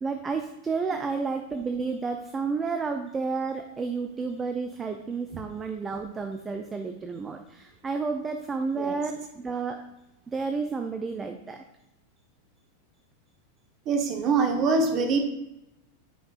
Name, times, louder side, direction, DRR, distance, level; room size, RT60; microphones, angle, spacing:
voice 1, 0.0-9.8 10.3-11.6, right 4 dB, 15° right, 6 dB, 0.4 m, -31 dB
voice 2, 13.9-15.2, right 4 dB, 35° right, 5 dB, 0.9 m, -24 dB
9.3 x 5.5 x 2.4 m, 0.90 s
figure-of-eight pair, 90°, 0 cm